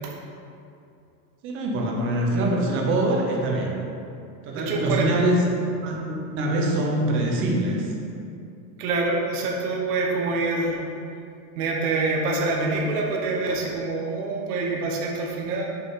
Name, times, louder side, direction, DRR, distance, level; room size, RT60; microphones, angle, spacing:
voice 1, 1.4-3.8 4.4-7.9, right 1 dB, 25° right, -1 dB, 0.7 m, -24 dB
voice 2, 4.6-5.1 8.8-10.8 11.5-15.7, right 3 dB, 65° right, -1 dB, 1.2 m, -26 dB
6.4 x 5.2 x 3.7 m, 2.6 s
supercardioid pair, 155°, 50 cm